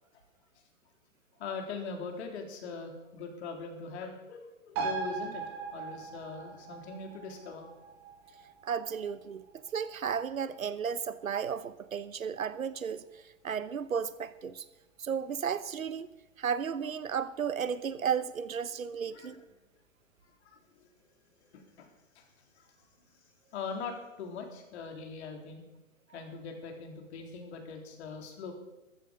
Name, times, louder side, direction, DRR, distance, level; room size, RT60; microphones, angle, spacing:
voice 1, 1.4-5.4 5.7-7.6 19.1-19.4 20.5-20.9 21.4-21.9 22.2-22.3 22.6-22.7 23.5-25.6 26.1-28.5, left 5 dB, 55° left, 3 dB, 3.7 m, -41 dB
sound 1, 4.7-11.7 12.1-12.2, right 5 dB, 35° right, 4.6 m, -41 dB
voice 2, 8.6-9.4 9.7-14.6 15.0-16.1 16.4-19.4, right 7 dB, 90° right, 15 dB, 1.0 m, -34 dB
14.0 x 14.0 x 5.2 m, 1.0 s
hypercardioid pair, 130°, 40 cm